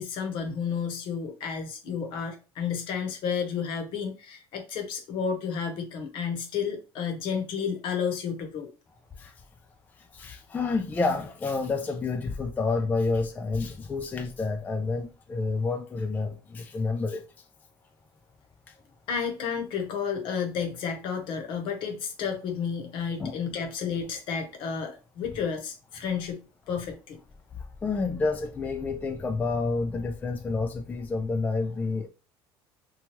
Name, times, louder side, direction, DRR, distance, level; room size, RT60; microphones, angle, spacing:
voice 1, 0.0-8.7 19.1-26.4 26.7-27.2, left 6 dB, 65° left, 0.9 m, -31 dB
voice 2, 10.1-17.2 23.2-23.4 27.8-32.1, left 3 dB, 15° left, 0.3 m, -29 dB
2.9 x 2.3 x 3.0 m
cardioid pair, 125°, 10 cm